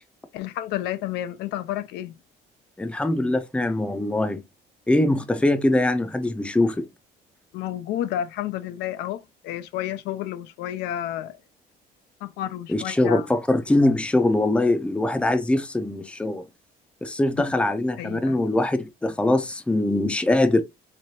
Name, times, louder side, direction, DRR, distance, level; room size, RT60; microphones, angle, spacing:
voice 1, 0.3-2.2 7.5-11.4 12.2-13.3 18.0-18.4, left 12 dB, 85° left, 0.4 m, -31 dB
voice 2, 2.8-4.4 4.9-6.8 12.7-16.4 17.0-20.6, left 2 dB, 5° left, 0.5 m, -22 dB
3.3 x 3.2 x 2.7 m
cardioid pair, 110°, 17 cm